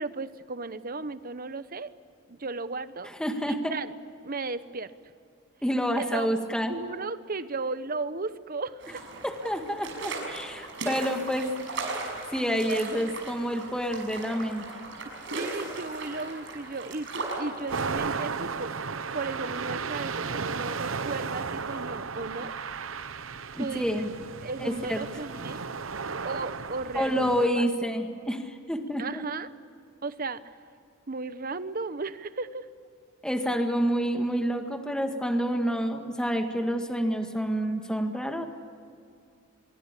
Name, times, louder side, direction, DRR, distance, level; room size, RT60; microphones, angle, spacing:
voice 1, 0.0-1.9 2.3-3.1 3.5-3.9 4.2-4.9 6.0-6.3 6.7-9.1 12.6-13.2 15.0-22.5 23.0-23.1 23.6-24.0 24.4-25.7 26.2-27.7 29.0-29.5 30.0-30.4 31.1-32.7, right 3 dB, 45° right, 13 dB, 1.0 m, -35 dB
voice 2, 3.2-3.8 5.6-6.8 9.2-11.5 12.3-14.6 23.6-24.1 24.6-25.0 27.0-29.2 33.2-38.5, equal, 5° left, 5 dB, 1.9 m, -28 dB
sound 1, 8.8-17.9, right 3 dB, 65° right, 6.4 m, -37 dB
sound 2, 17.7-27.5, right 5 dB, 80° right, 0.9 m, -34 dB
25.0 x 23.5 x 8.4 m, 2.4 s
head